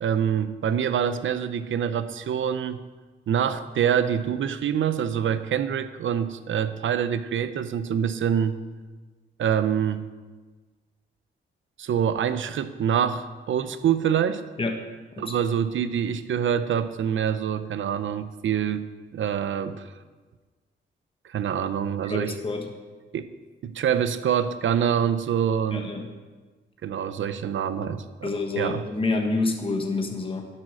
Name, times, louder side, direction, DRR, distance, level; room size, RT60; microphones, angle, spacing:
voice 1, 0.0-2.8 3.3-8.5 9.4-10.0 11.8-14.4 15.2-19.9 21.2-22.4 23.1-23.3 23.6-25.9 26.8-28.8, right 8 dB, 80° right, 12 dB, 0.7 m, -25 dB
voice 2, 22.1-22.7 25.7-26.1 28.2-30.5, left 3 dB, 25° left, 3 dB, 1.2 m, -28 dB
11.5 x 8.6 x 6.2 m, 1.3 s
wide cardioid pair, 120°, 20 cm